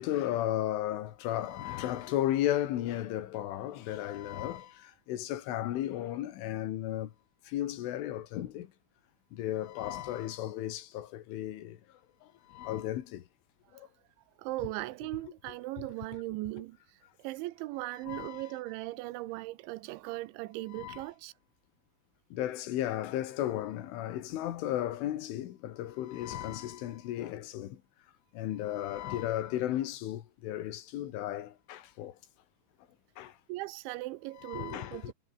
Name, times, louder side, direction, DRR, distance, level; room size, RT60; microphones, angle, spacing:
voice 1, 0.0-7.1 7.5-8.7 9.3-11.8 12.2-13.2 13.7-13.9 15.8-15.9 18.1-18.5 20.7-21.0 22.3-27.8 28.3-32.2 33.2-33.3 34.4-35.1, left 13 dB, 80° left, 4.3 m, -34 dB
voice 2, 14.4-21.3 33.5-35.1, right 19 dB, 85° right, 3.1 m, -38 dB
omnidirectional pair, 5.5 m